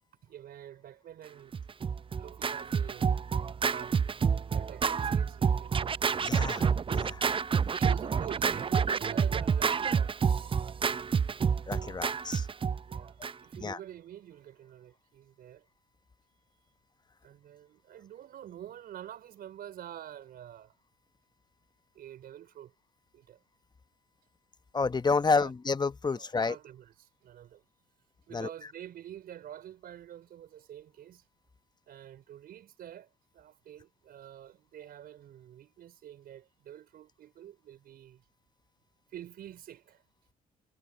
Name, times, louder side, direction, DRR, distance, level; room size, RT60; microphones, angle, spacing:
voice 1, 0.2-1.5 2.2-3.1 3.7-4.0 4.5-5.7 7.7-10.5 12.9-15.6 17.2-20.7 21.9-22.7 23.1-23.4 25.3-25.5 26.1-27.6 28.3-31.2 31.9-38.2 39.1-40.0, right 11 dB, 65° right, 4.5 m, -47 dB
Scratching (performance technique), 1.5-13.6, right 6 dB, 30° right, 0.6 m, -28 dB
voice 2, 6.2-7.2 11.7-12.5 13.6-13.8 24.7-26.6 28.3-28.5, left 4 dB, 25° left, 1.0 m, -30 dB
hypercardioid pair, 60°, 17 cm